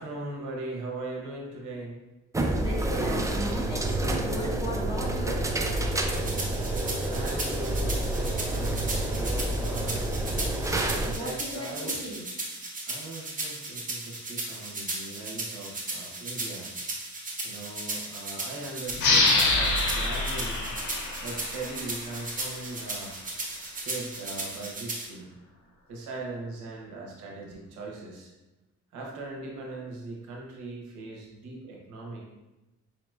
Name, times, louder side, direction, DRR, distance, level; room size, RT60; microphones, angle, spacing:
voice 1, 0.0-2.0 7.0-10.0 11.0-12.0 12.9-16.7 17.4-20.7 21.2-23.1 23.7-25.3 25.9-28.3 28.9-32.2, right 2 dB, 80° right, -2 dB, 1.0 m, -39 dB
sound 1, 2.3-11.1, right 1 dB, 10° right, 0.3 m, -28 dB
voice 2, 2.4-5.5 11.1-12.2 20.4-20.6 20.8-21.2, equal, 15° left, -5 dB, 1.3 m, -37 dB
sound 2, 6.1-25.1, right 2 dB, 25° right, 0.9 m, -36 dB
sound 3, 19.0-22.2, left 3 dB, 80° left, 0.8 m, -25 dB
4.9 x 2.9 x 2.3 m, 1.0 s
cardioid pair, 90°, 30 cm